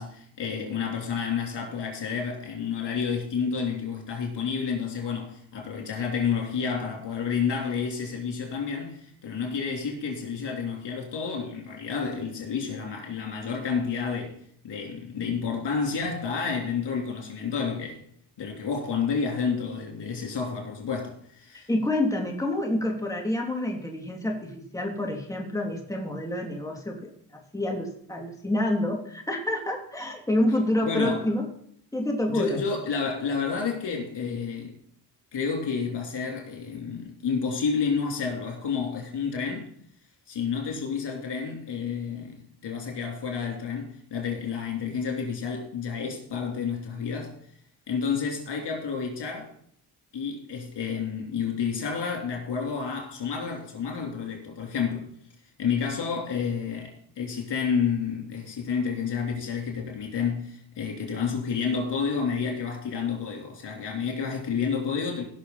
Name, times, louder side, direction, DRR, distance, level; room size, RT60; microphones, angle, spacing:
voice 1, 0.0-14.4 14.6-18.0 18.4-21.7 30.8-31.2 32.3-34.8 35.3-39.7 40.3-47.3 47.9-49.5 50.1-55.1 55.6-65.2, left 6 dB, 80° left, 3.4 m, -30 dB
voice 2, 21.7-27.1 27.5-31.4 31.9-32.6, left 1 dB, 10° left, 2.5 m, -28 dB
17.5 x 6.3 x 4.0 m
cardioid pair, 80°, 41 cm